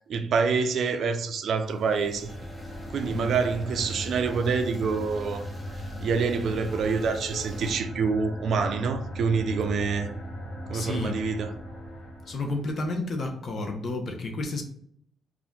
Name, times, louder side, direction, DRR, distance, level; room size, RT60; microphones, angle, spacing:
voice 1, 0.1-2.3 2.9-5.4 6.0-10.1 10.7-11.5, right 5 dB, 65° right, 0.4 m, -26 dB
sound 1, 1.6-7.8, left 1 dB, 5° left, 0.6 m, -46 dB
sound 2, 2.2-12.6, equal, 85° left, 1.2 m, -38 dB
voice 2, 3.0-3.3 10.7-11.2 12.3-14.6, left 2 dB, 50° left, 0.6 m, -31 dB
2.4 x 2.1 x 3.7 m
cardioid pair, 90°, 0 cm